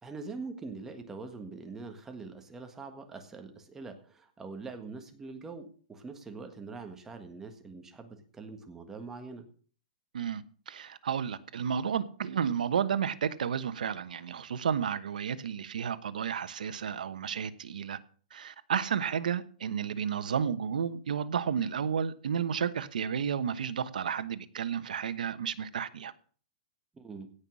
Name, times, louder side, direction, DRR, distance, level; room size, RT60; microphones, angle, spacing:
voice 1, 0.0-9.5 26.9-27.3, right 4 dB, 10° right, 1.6 m, -43 dB
voice 2, 10.1-18.0 18.3-26.1, right 7 dB, 85° right, 1.2 m, -32 dB
17.0 x 5.7 x 6.3 m
hypercardioid pair, 155°, 4 cm